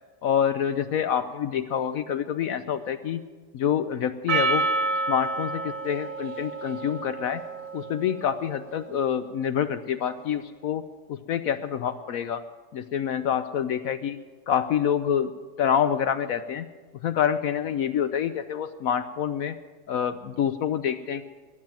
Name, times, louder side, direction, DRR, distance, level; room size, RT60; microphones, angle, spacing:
voice 1, 0.2-3.2 3.5-4.6 5.1-7.4 7.7-10.8 11.1-12.4 12.7-14.2 14.5-15.3 15.6-16.7 17.0-19.6 19.9-21.2, left 9 dB, 70° left, 10 dB, 0.9 m, -27 dB
Percussion, 4.3-8.8, right 3 dB, 55° right, 1.3 m, -29 dB
15.0 x 10.5 x 7.4 m, 1.4 s
omnidirectional pair, 1.9 m